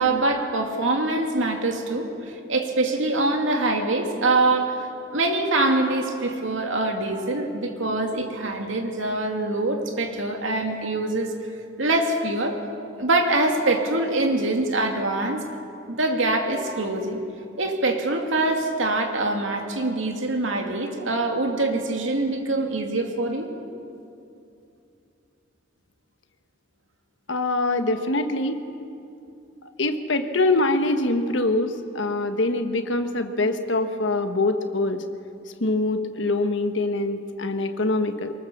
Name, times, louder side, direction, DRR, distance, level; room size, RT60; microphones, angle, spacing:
voice 1, 0.0-4.9 5.1-11.3 11.8-12.6 13.0-15.4 15.9-17.2 17.6-23.5, right 2 dB, 85° right, 3 dB, 2.5 m, -24 dB
voice 2, 27.3-28.6 29.8-35.0 35.6-38.3, left 2 dB, 75° left, 7 dB, 1.3 m, -24 dB
23.0 x 19.0 x 7.2 m, 2.6 s
head